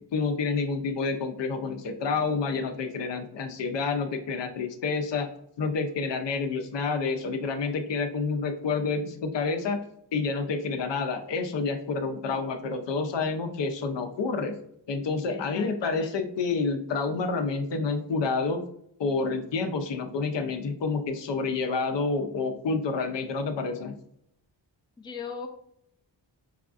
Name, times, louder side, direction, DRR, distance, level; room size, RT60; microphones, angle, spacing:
voice 1, 0.1-5.3 5.6-9.8 10.1-14.5 14.9-18.6 19.0-23.9, left 4 dB, 70° left, 6 dB, 0.6 m, -29 dB
voice 2, 15.3-16.2 25.0-25.5, left 5 dB, 10° left, 3 dB, 0.4 m, -39 dB
4.9 x 2.4 x 2.4 m, 0.72 s
wide cardioid pair, 100°, 46 cm